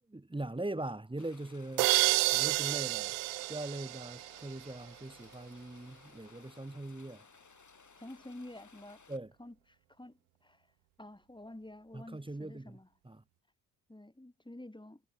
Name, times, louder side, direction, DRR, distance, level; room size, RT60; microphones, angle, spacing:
voice 1, 0.1-2.1 2.3-3.2 3.5-7.3 9.1-9.3 11.9-12.8 13.0-13.2, right 2 dB, 10° right, 1.8 m, -41 dB
Rain, 1.2-9.2, left 5 dB, 35° left, 6.6 m, -59 dB
sound 1, 1.8-4.6, right 27 dB, 65° right, 0.6 m, -30 dB
voice 2, 8.0-9.0 9.4-9.5 10.0-10.6 11.0-12.9 13.9-15.0, left 1 dB, 10° left, 4.4 m, -49 dB
hypercardioid pair, 40°, 48 cm